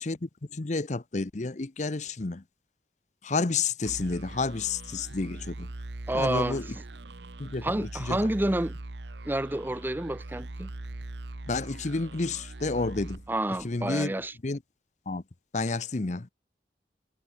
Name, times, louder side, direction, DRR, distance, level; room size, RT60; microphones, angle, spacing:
voice 1, 0.0-2.4 3.2-5.7 6.1-6.7 7.4-8.2 11.4-13.2 13.6-14.1 14.4-14.6 15.1-15.2 15.5-16.3, left 3 dB, 40° left, 0.7 m, -30 dB
sound 1, 3.8-14.1, right 2 dB, 75° right, 1.1 m, -41 dB
voice 2, 6.1-6.6 7.6-8.7 9.2-10.7 13.3-14.3, right 1 dB, 10° right, 0.6 m, -29 dB
head